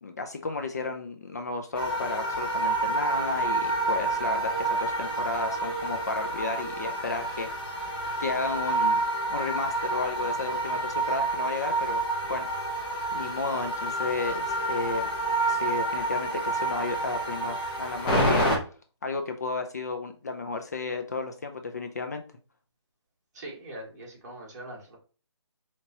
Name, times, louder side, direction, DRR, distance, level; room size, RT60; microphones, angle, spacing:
voice 1, 0.0-7.5 8.2-9.0 9.3-12.7 13.1-15.1 15.5-18.5 19.0-22.2, left 3 dB, 35° left, 6 dB, 0.4 m, -33 dB
sound 1, 1.7-18.6, right 2 dB, 20° left, 1.0 m, -28 dB
voice 2, 23.3-25.0, right 1 dB, 35° right, -3 dB, 1.8 m, -42 dB
5.2 x 2.9 x 2.7 m, 0.36 s
hypercardioid pair, 165°, 15 cm